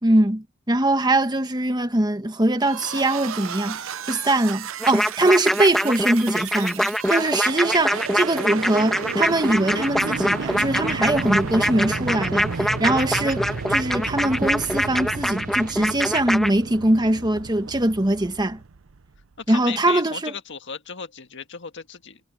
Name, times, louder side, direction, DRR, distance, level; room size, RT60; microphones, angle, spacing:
voice 1, 0.0-13.4 13.7-18.6 19.5-20.3, right 1 dB, 20° right, 1.4 m, -22 dB
sound 1, 2.6-19.2, right 5 dB, 65° right, 0.7 m, -33 dB
sound 2, 4.8-16.5, equal, ahead, 1.8 m, -24 dB
sound 3, 10.6-15.7, right 1 dB, 45° right, 7.0 m, -40 dB
voice 2, 19.4-22.2, left 6 dB, 60° left, 1.7 m, -35 dB
head